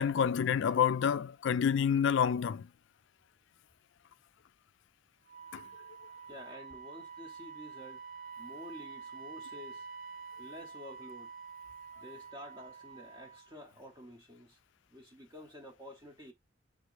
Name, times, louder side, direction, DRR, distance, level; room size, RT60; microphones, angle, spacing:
voice 1, 0.0-2.7 5.5-5.6, left 7 dB, 60° left, 0.3 m, -28 dB
Wind instrument woodwind instrument, 5.3-13.5, right 5 dB, 65° right, 0.8 m, -48 dB
voice 2, 6.3-8.0 8.4-9.9 10.3-11.3 12.0-14.6 14.9-16.3, left 1 dB, 20° right, 0.7 m, -50 dB
4.6 x 2.5 x 4.5 m
head